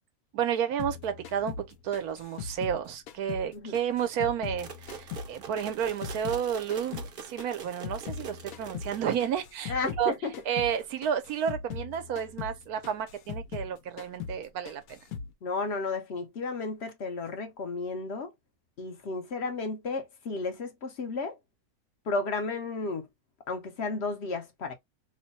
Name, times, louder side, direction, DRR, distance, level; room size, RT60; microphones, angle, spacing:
voice 1, 0.3-10.1 10.4-15.0, right 8 dB, 80° right, 1.2 m, -31 dB
sound 1, 0.8-3.5 3.7-6.4 6.7-10.1 10.3-10.8 11.0-13.7 14.0-14.4 14.7-15.3, left 6 dB, 75° left, 1.1 m, -40 dB
sound 2, 4.6-9.5, right 6 dB, 50° right, 0.8 m, -44 dB
voice 2, 9.7-10.3 15.4-18.3 18.8-21.4 22.1-23.1 23.5-24.7, left 3 dB, 55° left, 0.8 m, -33 dB
3.0 x 2.2 x 3.9 m
omnidirectional pair, 1.6 m